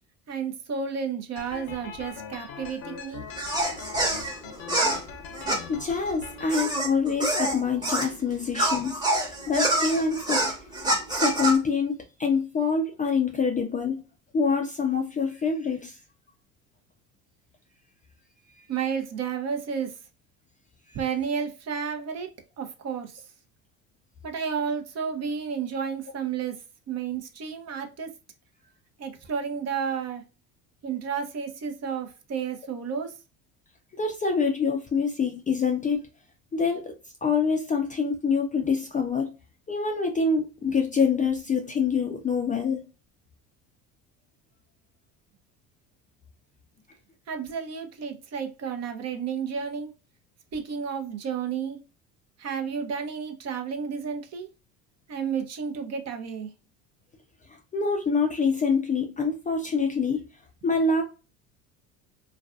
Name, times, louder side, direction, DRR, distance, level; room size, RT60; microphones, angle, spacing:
voice 1, 0.3-3.3 18.7-19.9 20.9-22.3 22.6-23.2 24.2-26.6 26.9-28.1 29.0-30.2 30.8-33.1 47.3-49.9 50.5-51.8 52.4-54.5 55.1-56.5, right 6 dB, 40° right, 0.6 m, -31 dB
sound 1, 1.4-6.5, left 6 dB, 60° left, 0.7 m, -41 dB
sound 2, 3.3-8.1 8.5-11.6, right 1 dB, 10° right, 1.0 m, -26 dB
voice 2, 5.7-10.4 11.1-14.0 14.3-16.0 18.6-18.7 34.0-36.0 36.5-37.0 37.2-39.3 39.7-42.8 57.5-60.2 60.6-61.0, left 5 dB, 20° left, 0.4 m, -26 dB
2.5 x 2.2 x 2.3 m
hypercardioid pair, 75°, 43 cm